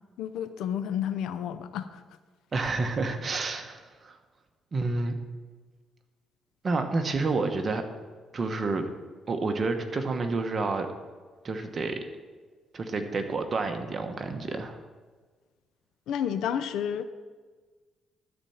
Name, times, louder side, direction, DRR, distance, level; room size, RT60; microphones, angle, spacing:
voice 1, 0.2-2.0 16.1-17.0, left 9 dB, 85° left, 11 dB, 0.6 m, -31 dB
voice 2, 2.5-4.2 4.7-5.2 6.6-7.8 8.3-8.9 9.3-10.9 11.4-12.0 12.7-14.8, right 3 dB, 40° right, 6 dB, 1.2 m, -29 dB
13.0 x 4.4 x 7.2 m, 1.4 s
cardioid pair, 90°, 0 cm